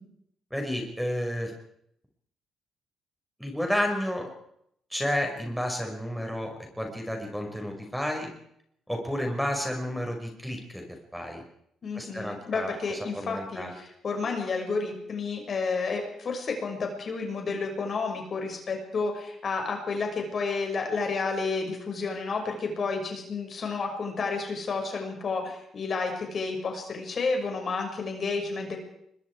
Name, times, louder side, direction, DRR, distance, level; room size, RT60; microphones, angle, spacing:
voice 1, 0.5-1.5 3.4-4.3 4.9-8.3 8.9-10.8 11.1-11.4 12.0-12.7 13.1-13.7, equal, ahead, 2 dB, 5.8 m, -31 dB
voice 2, 11.8-28.8, left 4 dB, 50° left, 3 dB, 6.2 m, -31 dB
25.0 x 22.0 x 4.9 m, 0.73 s
cardioid pair, 90°, 0 cm